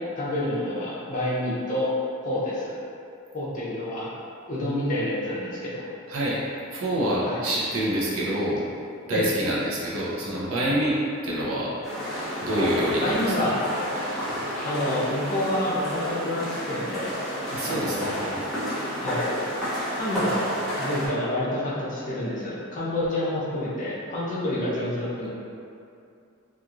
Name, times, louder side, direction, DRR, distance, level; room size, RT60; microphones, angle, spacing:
voice 1, 0.2-1.9 2.2-2.7 3.3-4.1 4.5-5.9 7.2-7.4 9.1-9.3 13.0-13.5 14.6-17.1 17.6-18.5 19.0-19.2 19.9-20.5 20.8-25.3, left 1 dB, 40° left, -7 dB, 0.6 m, -28 dB
voice 2, 6.1-6.4 6.7-8.6 9.1-11.0 11.2-11.7 12.4-13.5 14.3-14.4 17.5-18.4, right 1 dB, 85° right, -6 dB, 0.6 m, -27 dB
sound 1, 11.8-21.1, equal, ahead, 0.7 m, -30 dB
sound 2, 13.0-20.4, equal, 60° right, 1.1 m, -46 dB
2.9 x 2.4 x 2.4 m, 2.5 s
head